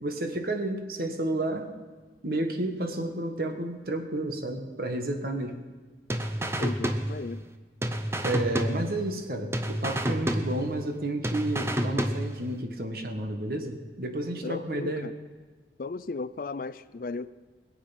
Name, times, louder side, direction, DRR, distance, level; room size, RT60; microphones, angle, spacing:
voice 1, 0.0-1.7 2.2-5.6 8.2-15.1, right 1 dB, 55° right, 5 dB, 1.5 m, -31 dB
sound 1, 6.1-7.5 7.8-9.3 9.5-11.0 11.2-12.6, equal, 15° right, 0.7 m, -30 dB
voice 2, 6.6-7.4 14.4-15.1 15.8-17.3, left 3 dB, 50° left, 15 dB, 0.4 m, -36 dB
21.5 x 8.0 x 5.9 m, 1.3 s
head